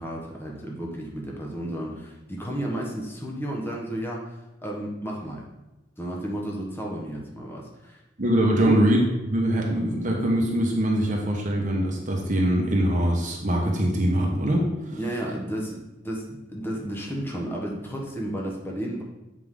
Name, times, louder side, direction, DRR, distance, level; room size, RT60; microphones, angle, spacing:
voice 1, 0.0-5.4 6.0-8.0 8.6-8.9 14.9-19.0, right 1 dB, 10° left, -2 dB, 1.1 m, -32 dB
voice 2, 8.2-9.0 9.3-14.7, equal, 40° right, 0 dB, 1.1 m, -23 dB
8.0 x 4.8 x 3.7 m, 0.96 s
head